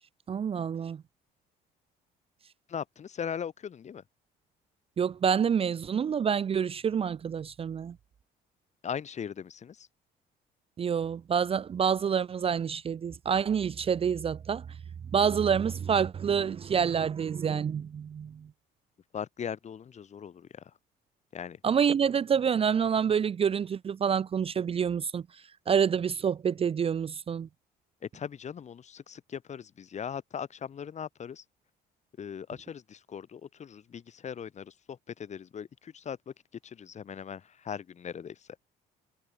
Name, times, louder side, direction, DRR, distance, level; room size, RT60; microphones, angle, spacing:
voice 1, 0.3-1.0 5.0-7.9 10.8-14.6 15.1-18.4 21.6-25.2 25.7-27.5, right 7 dB, 35° right, 0.7 m, -27 dB
voice 2, 2.7-4.0 8.8-9.9 19.1-20.6 21.3-21.6 28.0-31.4 32.2-36.3 36.6-38.4, left 7 dB, 45° left, 4.8 m, -39 dB
cardioid pair, 110°, 17 cm